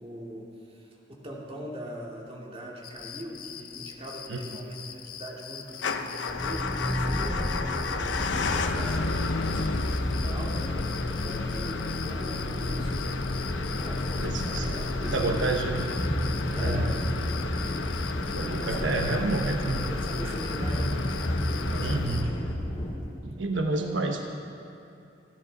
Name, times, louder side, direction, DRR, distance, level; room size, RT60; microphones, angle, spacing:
voice 1, 0.0-7.6 7.8-15.9 16.5-16.9 18.5-21.3 21.7-22.3, equal, 35° right, -3 dB, 2.5 m, -42 dB
sound 1, 2.8-22.2, left 8 dB, 50° left, 0.8 m, -43 dB
Motor vehicle (road) / Engine starting / Idling, 5.7-22.7, left 3 dB, 80° left, 0.8 m, -33 dB
sound 2, 6.3-22.9, equal, 25° left, 2.5 m, -32 dB
voice 2, 14.2-14.7 15.1-15.8 16.6-16.9 18.3-19.9 21.8-22.3 23.2-24.2, right 3 dB, 90° right, 3 dB, 1.1 m, -29 dB
29.0 x 10.5 x 4.0 m, 2.7 s
head